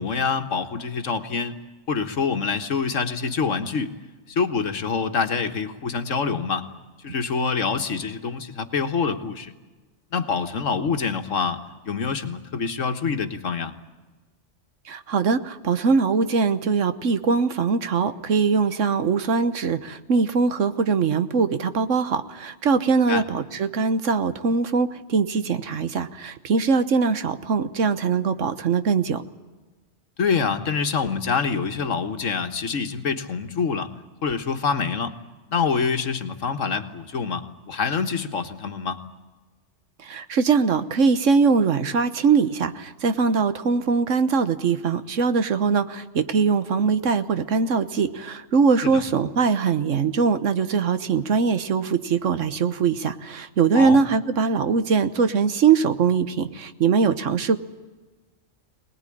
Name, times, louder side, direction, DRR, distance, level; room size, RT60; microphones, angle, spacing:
voice 1, 0.0-1.6 1.9-4.0 4.3-6.6 7.0-9.5 10.1-13.7 23.1-23.2 30.2-33.9 34.2-35.2 35.5-39.0 48.8-49.0 53.7-54.0, left 5 dB, 75° left, 8 dB, 1.8 m, -26 dB
voice 2, 14.9-29.2 40.0-57.6, right 5 dB, 75° right, 11 dB, 1.4 m, -22 dB
24.0 x 19.5 x 9.9 m, 1.3 s
omnidirectional pair, 1.3 m